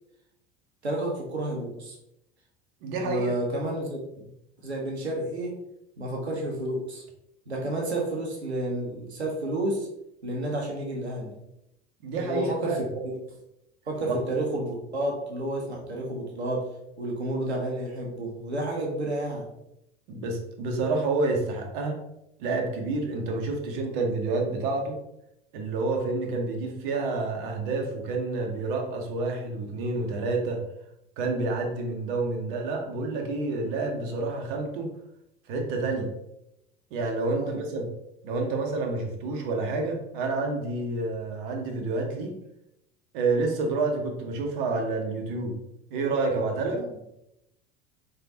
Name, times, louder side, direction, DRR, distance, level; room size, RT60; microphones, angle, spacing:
voice 1, 0.8-2.0 3.0-4.3 4.6-5.6 6.0-7.0 7.5-9.9 10.2-11.3 12.1-13.1 13.9-16.7 17.0-19.4 37.3-37.6 46.7-46.9, right 1 dB, 85° right, -1 dB, 0.9 m, -30 dB
voice 2, 2.8-3.3 12.0-12.9 14.1-14.2 20.1-22.0 22.4-25.0 25.5-30.6 31.2-34.9 35.5-36.1 36.9-37.9 38.2-42.4 43.1-45.5 45.9-46.8, right 3 dB, 55° right, 2 dB, 0.9 m, -29 dB
3.7 x 3.4 x 2.8 m, 0.82 s
figure-of-eight pair, 75°, 32 cm